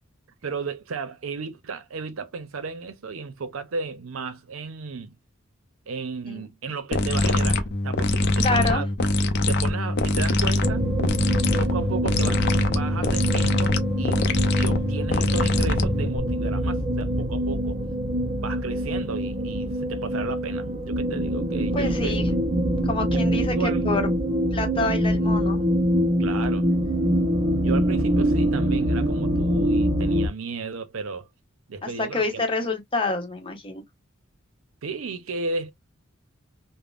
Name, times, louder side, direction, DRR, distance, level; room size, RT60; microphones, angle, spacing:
voice 1, 0.4-5.2 5.9-8.9 9.5-10.8 11.6-14.2 14.6-17.8 18.4-22.2 23.1-23.8 26.2-26.7 27.6-31.3 31.7-32.4 34.8-35.7, right 4 dB, 85° right, 0.6 m, -34 dB
sound 1, 6.9-16.2, left 2 dB, 55° left, 0.5 m, -23 dB
voice 2, 8.4-8.8 21.7-22.3 22.8-23.5 23.8-24.0 24.5-25.6 31.8-33.8, left 3 dB, 25° left, 0.9 m, -27 dB
sound 2, 10.6-30.3, equal, 35° right, 0.6 m, -25 dB
3.5 x 2.1 x 2.4 m
head